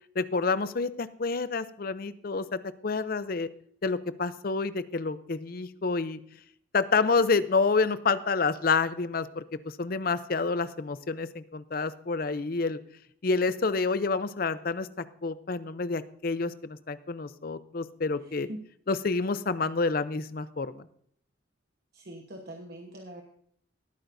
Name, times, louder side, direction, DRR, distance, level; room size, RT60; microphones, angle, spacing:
voice 1, 0.2-3.5 3.8-6.2 6.7-12.8 13.2-18.5 18.9-20.9, left 4 dB, 45° left, 14 dB, 0.5 m, -28 dB
voice 2, 18.2-18.6 21.9-23.2, right 1 dB, 50° right, 2 dB, 1.1 m, -43 dB
20.0 x 8.9 x 2.6 m, 0.65 s
head